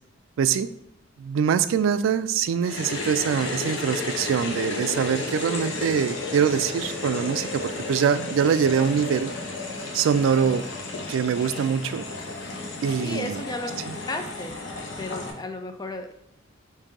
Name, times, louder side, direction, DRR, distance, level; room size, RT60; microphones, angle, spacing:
voice 1, 0.4-0.7 1.2-9.3 9.9-10.6 11.1-12.1 12.8-13.4 13.9-14.0, right 7 dB, 90° right, 13 dB, 0.3 m, -24 dB
sound 1, 2.5-15.4, right 2 dB, 40° right, 0.9 m, -50 dB
sound 2, 2.6-15.3, left 3 dB, 75° left, 0.8 m, -33 dB
voice 2, 13.0-14.6 15.0-16.1, left 2 dB, 20° left, 6 dB, 0.4 m, -34 dB
5.2 x 2.6 x 3.7 m, 0.78 s
head